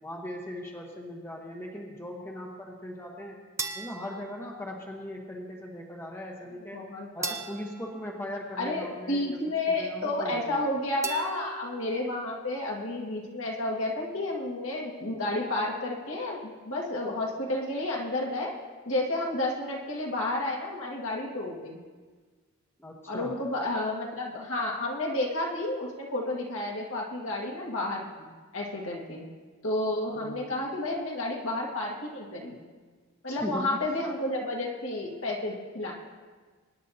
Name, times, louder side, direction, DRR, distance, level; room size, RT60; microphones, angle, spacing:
voice 1, 0.0-3.4 3.7-6.9 7.1-9.4 9.7-10.6 22.8-23.3 30.1-30.4 33.3-33.8, left 1 dB, 10° left, -1 dB, 1.1 m, -39 dB
sound 1, 3.6-5.1 7.2-9.1 11.0-12.2, right 4 dB, 15° right, 0.6 m, -39 dB
voice 2, 6.7-7.3 8.6-18.5 18.9-21.8 23.1-29.3 29.6-32.6 33.2-35.9, left 2 dB, 65° left, -2 dB, 2.0 m, -31 dB
23.5 x 10.0 x 2.8 m, 1.4 s
head